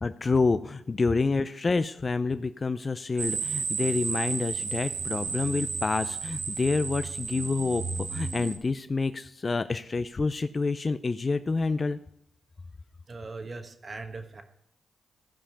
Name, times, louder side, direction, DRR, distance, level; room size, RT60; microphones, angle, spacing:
voice 1, 0.0-7.8 8.1-12.0, left 3 dB, 40° left, 11 dB, 0.4 m, -28 dB
sound 1, 3.2-8.6, right 5 dB, 70° right, 1.1 m, -33 dB
voice 2, 13.1-14.4, right 3 dB, 45° right, 7 dB, 1.2 m, -40 dB
14.0 x 5.1 x 5.7 m, 0.75 s
supercardioid pair, 55°, 0 cm